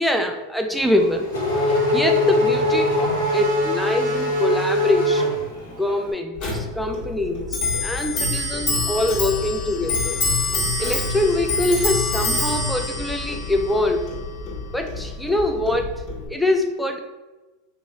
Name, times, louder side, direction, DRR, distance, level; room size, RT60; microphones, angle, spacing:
voice 1, 0.0-5.4 5.6-10.2 10.8-14.1 14.7-16.0 16.3-17.0, left 1 dB, 5° left, 3 dB, 0.3 m, -24 dB
Race car auto racing / Accelerating revving vroom, 0.8-6.0, left 1 dB, 80° left, 1.1 m, -22 dB
Clock, 6.4-16.3, left 2 dB, 55° left, 1.3 m, -26 dB
3.0 x 2.4 x 3.8 m, 1.1 s
hypercardioid pair, 95°, 0 cm